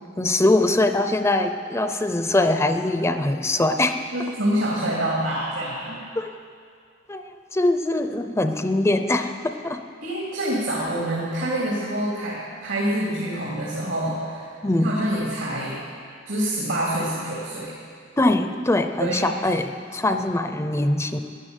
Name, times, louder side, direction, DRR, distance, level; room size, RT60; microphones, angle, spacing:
voice 1, 0.2-4.0 6.2-6.3 7.1-9.8 14.6-14.9 18.2-21.2, left 2 dB, 15° left, 7 dB, 0.6 m, -22 dB
voice 2, 4.1-6.0 10.0-14.5 14.8-15.8 16.3-17.7 19.0-19.3, right 1 dB, 80° right, -5 dB, 3.0 m, -26 dB
13.0 x 10.5 x 9.1 m, 2.2 s
head